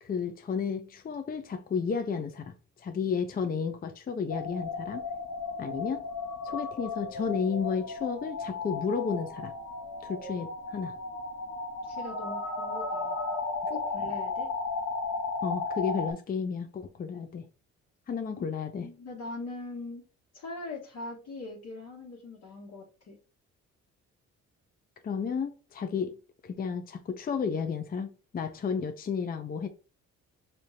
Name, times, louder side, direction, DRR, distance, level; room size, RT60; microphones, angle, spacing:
voice 1, 0.0-5.0 5.6-6.0 6.4-9.5 10.0-11.0 15.4-17.4 18.1-18.9 25.0-26.2 26.4-29.7, left 6 dB, 30° left, 0.5 m, -32 dB
sound 1, 4.3-16.1, left 3 dB, 75° left, 1.2 m, -35 dB
voice 2, 11.8-13.2 13.7-14.5 18.4-18.5 18.8-20.0 20.3-23.2, left 3 dB, 60° left, 1.4 m, -41 dB
4.9 x 2.8 x 2.7 m
cardioid pair, 90°, 30 cm